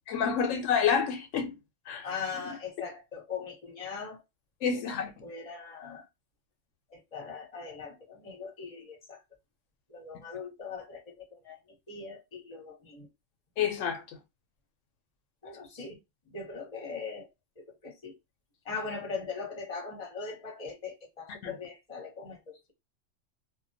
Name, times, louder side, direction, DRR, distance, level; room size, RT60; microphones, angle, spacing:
voice 1, 0.1-1.5 1.9-2.1 4.6-5.1 13.6-14.2 21.4-21.5, left 7 dB, 85° left, 0.9 m, -28 dB
voice 2, 2.0-4.2 4.7-6.1 6.9-9.2 9.9-13.1 15.4-16.0 16.3-17.3 17.6-18.2 18.6-22.7, left 5 dB, 35° left, 0.9 m, -40 dB
2.4 x 2.2 x 2.6 m
omnidirectional pair, 1.3 m